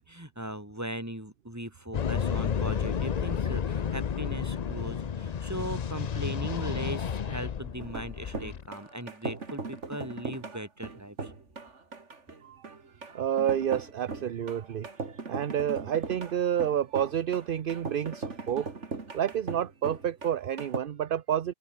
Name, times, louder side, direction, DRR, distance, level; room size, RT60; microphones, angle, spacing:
voice 1, 0.0-11.3, right 1 dB, 15° right, 4.3 m, -39 dB
sound 1, 1.9-8.7, left 7 dB, 45° left, 0.7 m, -31 dB
sound 2, 7.8-20.8, right 4 dB, 75° right, 2.9 m, -39 dB
voice 2, 12.4-12.8 13.0-18.7 19.1-21.5, right 9 dB, 55° right, 0.8 m, -29 dB
open air
omnidirectional pair, 1.2 m